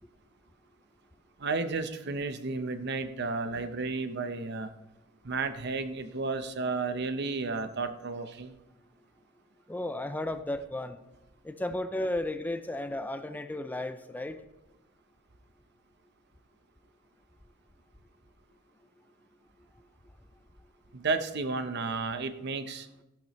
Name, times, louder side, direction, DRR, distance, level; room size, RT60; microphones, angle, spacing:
voice 1, 1.4-4.7 5.2-8.5 20.9-22.9, right 3 dB, 55° right, 0.8 m, -32 dB
voice 2, 9.7-11.0 11.4-14.4, left 1 dB, 10° left, 0.4 m, -34 dB
13.5 x 11.5 x 3.1 m
head